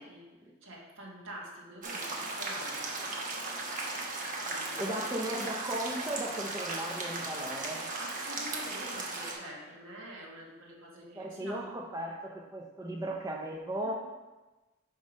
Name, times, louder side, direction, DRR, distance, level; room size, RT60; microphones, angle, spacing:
voice 1, 0.6-3.2 4.4-5.1 8.0-11.7 13.8-13.9, right 1 dB, 80° right, -2 dB, 1.7 m, -46 dB
sound 1, 1.8-9.3, right 2 dB, 40° right, 1.1 m, -37 dB
voice 2, 4.8-7.9 11.2-13.9, right 1 dB, 15° right, 0 dB, 0.5 m, -36 dB
5.3 x 5.2 x 5.1 m, 1.2 s
head